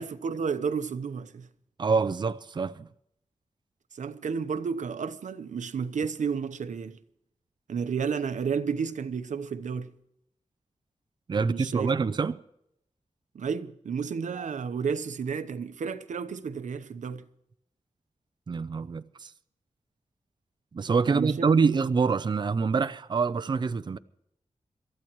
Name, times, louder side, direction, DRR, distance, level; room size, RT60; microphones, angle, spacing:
voice 1, 0.0-1.5 3.9-7.0 7.7-9.9 11.4-11.9 13.3-17.3 21.1-21.7, right 6 dB, 90° right, 0.9 m, -32 dB
voice 2, 1.8-2.9 11.3-12.3 18.5-19.3 20.7-24.0, right 5 dB, 35° right, 0.5 m, -26 dB
27.0 x 14.0 x 3.1 m
wide cardioid pair, 155°, 12 cm